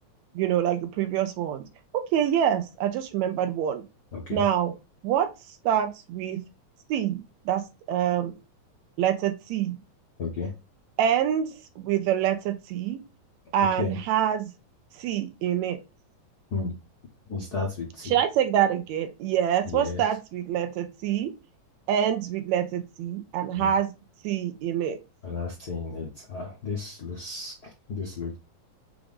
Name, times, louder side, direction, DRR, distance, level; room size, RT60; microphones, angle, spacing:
voice 1, 0.4-1.7 1.9-3.8 4.3-4.7 5.0-5.3 5.7-6.4 6.9-8.4 9.0-9.8 11.0-13.0 13.5-14.5 15.0-15.8 18.0-21.3 21.9-23.9 24.2-25.0, right 10 dB, 75° right, 1.8 m, -26 dB
voice 2, 4.1-4.4 10.2-10.5 13.8-14.0 16.5-16.7 17.3-18.2 19.7-20.0 23.6-23.7 25.2-28.4, left 4 dB, 85° left, 0.8 m, -33 dB
5.9 x 2.5 x 3.4 m
omnidirectional pair, 3.4 m